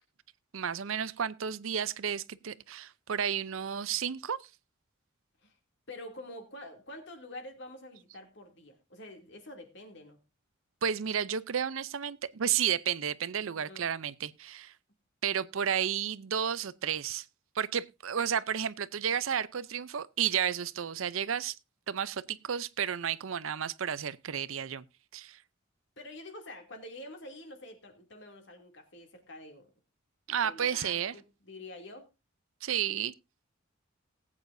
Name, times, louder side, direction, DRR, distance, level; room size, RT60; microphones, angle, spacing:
voice 1, 0.5-4.5 10.8-14.7 15.2-17.3 17.5-21.6 21.9-24.8 25.1-25.4 30.3-31.1 32.6-33.1, right 8 dB, 80° right, 0.6 m, -32 dB
voice 2, 5.9-10.2 13.4-13.9 26.0-29.7 30.4-32.1, left 1 dB, 60° left, 2.7 m, -47 dB
19.5 x 8.5 x 2.6 m
head